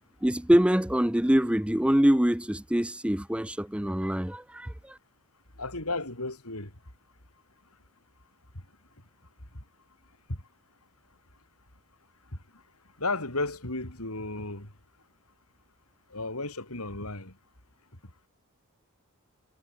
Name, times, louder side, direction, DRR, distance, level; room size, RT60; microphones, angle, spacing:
voice 1, 0.2-5.0, equal, 5° right, 0.6 m, -24 dB
voice 2, 5.6-6.7 10.3-10.4 13.0-14.7 16.1-17.3, left 2 dB, 80° left, 6.8 m, -33 dB
head